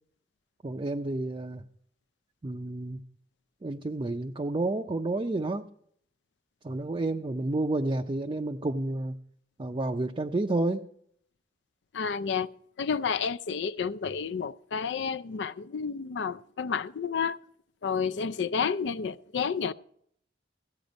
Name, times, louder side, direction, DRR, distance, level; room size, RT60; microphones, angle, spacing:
voice 1, 0.6-1.6 2.4-3.0 3.6-5.7 6.6-9.2 9.6-10.9, right 2 dB, 30° right, 0.5 m, -30 dB
voice 2, 11.9-12.5 12.8-17.4 17.8-19.7, left 6 dB, 75° left, 0.4 m, -30 dB
14.5 x 8.8 x 5.2 m
head